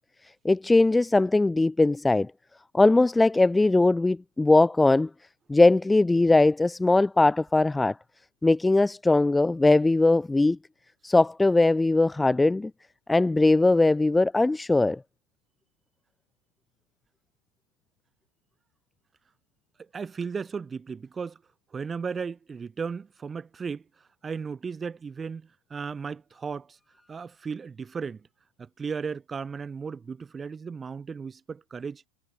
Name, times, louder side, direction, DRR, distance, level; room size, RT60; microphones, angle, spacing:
voice 1, 0.4-2.3 2.7-5.1 5.5-8.0 8.4-10.6 11.0-12.7 13.1-15.0, left 2 dB, 5° left, 0.5 m, -20 dB
voice 2, 19.8-21.4 21.7-23.8 24.2-26.8 27.1-28.3 28.6-32.0, right 5 dB, 15° right, 3.4 m, -35 dB
figure-of-eight pair, 90°, 0 cm